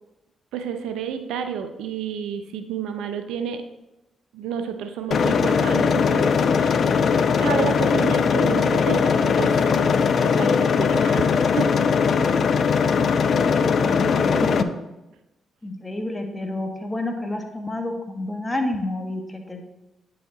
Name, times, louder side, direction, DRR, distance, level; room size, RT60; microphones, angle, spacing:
voice 1, 0.5-3.6 4.3-6.8 7.4-9.8 10.2-11.7, right 7 dB, 80° right, 8 dB, 0.5 m, -30 dB
sound 1, 5.1-14.6, left 6 dB, 60° left, 0.4 m, -20 dB
voice 2, 13.7-14.7 15.6-19.6, left 1 dB, 20° left, 4 dB, 1.5 m, -29 dB
8.9 x 5.0 x 3.8 m, 0.98 s
hypercardioid pair, 50°, 0 cm